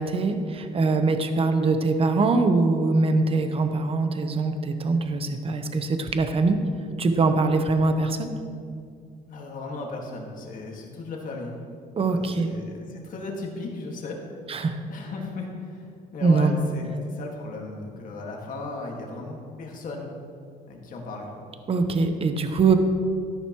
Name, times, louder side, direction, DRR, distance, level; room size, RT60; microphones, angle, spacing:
voice 1, 0.0-6.6 7.0-8.3 12.0-12.5 14.5-14.8 16.2-16.7 21.7-22.7, right 3 dB, 35° right, 7 dB, 1.0 m, -23 dB
voice 2, 9.3-11.5 12.0-14.2 14.9-20.1 20.7-21.3, left 3 dB, 50° left, 0 dB, 2.0 m, -36 dB
13.0 x 11.0 x 3.1 m, 2.3 s
cardioid pair, 110°, 17 cm